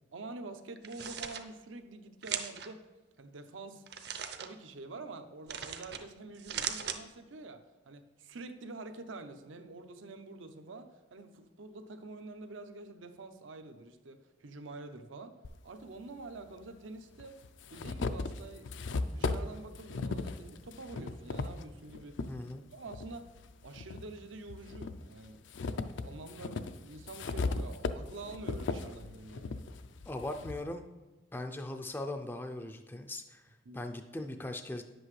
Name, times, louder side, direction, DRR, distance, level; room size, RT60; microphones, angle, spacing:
voice 1, 0.1-2.8 3.2-3.8 4.4-15.3 15.6-17.4 17.7-22.2 22.7-23.3 23.6-25.4 25.7-29.6 33.6-33.8, right 3 dB, 90° right, 7 dB, 0.7 m, -47 dB
sound 1, 0.8-1.4 2.2-2.7 3.9-4.5 5.5-6.0 6.3-7.0, right 8 dB, 55° right, 0.6 m, -38 dB
sound 2, 15.4-15.5 16.6-16.7 17.2-22.3 22.9-24.0 24.5-30.6, left 3 dB, 75° left, 0.4 m, -37 dB
voice 2, 22.3-22.7 30.1-30.8 31.3-34.8, left 1 dB, 10° left, 5 dB, 0.3 m, -39 dB
10.5 x 7.8 x 3.2 m, 1.2 s
head